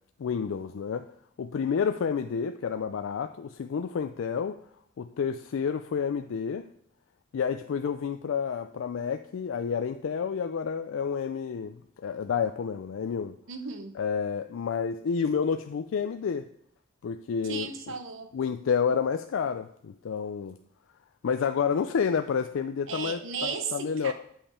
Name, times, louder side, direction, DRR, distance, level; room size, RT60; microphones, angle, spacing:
voice 1, 0.2-1.1 1.4-4.6 5.0-6.7 7.3-13.4 14.0-16.4 17.0-17.9 18.3-20.6 21.2-24.1, left 6 dB, 90° left, 9 dB, 0.4 m, -29 dB
voice 2, 13.5-14.0 17.4-18.3 22.9-24.1, right 5 dB, 90° right, 7 dB, 0.9 m, -35 dB
8.6 x 5.6 x 4.3 m, 0.68 s
head